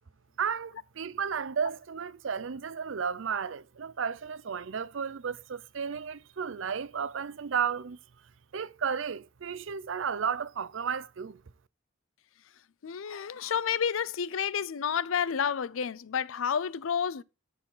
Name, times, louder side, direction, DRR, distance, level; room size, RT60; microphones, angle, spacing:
voice 1, 0.4-8.0 8.5-11.4, right 6 dB, 65° right, 0.5 m, -33 dB
voice 2, 12.8-17.2, left 7 dB, 75° left, 0.5 m, -30 dB
13.5 x 4.6 x 3.9 m
head